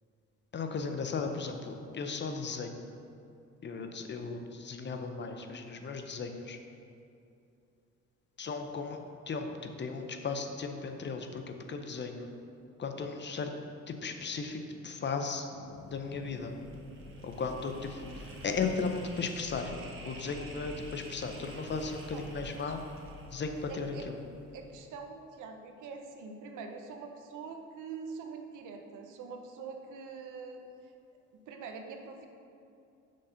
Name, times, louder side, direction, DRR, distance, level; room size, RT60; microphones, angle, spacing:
voice 1, 0.5-2.8 3.6-6.6 8.4-12.3 12.8-13.5 13.9-15.5 15.9-16.5 17.2-19.7 20.0-22.8 23.3-24.2, left 4 dB, 35° left, 5 dB, 0.6 m, -36 dB
sound 1, 15.5-20.5, left 3 dB, 85° left, 0.8 m, -52 dB
sound 2, 15.6-24.8, right 1 dB, 45° right, 1.1 m, -48 dB
voice 2, 22.1-22.7 23.7-24.1 24.5-30.6 31.5-32.3, right 5 dB, 80° right, 4 dB, 0.8 m, -44 dB
6.3 x 4.2 x 5.6 m, 2.6 s
cardioid pair, 90°, 30 cm